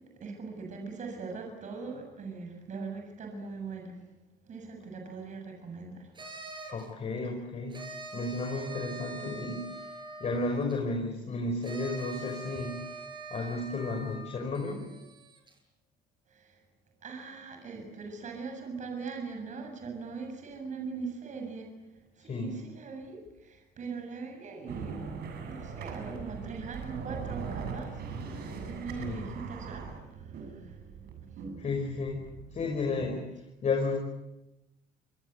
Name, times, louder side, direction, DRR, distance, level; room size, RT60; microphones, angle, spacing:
voice 1, 0.0-4.0 4.5-6.1 16.3-16.6 17.0-21.7 22.1-25.0 25.5-30.8, right 4 dB, 45° right, 3 dB, 7.5 m, -41 dB
sound 1, 6.1-6.9 7.7-10.8 11.6-15.5, right 2 dB, 25° right, 7.4 m, -44 dB
voice 2, 6.7-7.8 8.1-9.9 10.2-12.8 13.3-14.9 22.3-22.5 29.0-29.2 31.6-32.2 32.5-33.3 33.6-33.9, left 3 dB, 40° left, 1 dB, 5.7 m, -32 dB
sound 2, 24.7-33.1, right 5 dB, 70° right, 7.5 m, -41 dB
28.5 x 23.5 x 8.1 m, 0.94 s
cardioid pair, 110°, 17 cm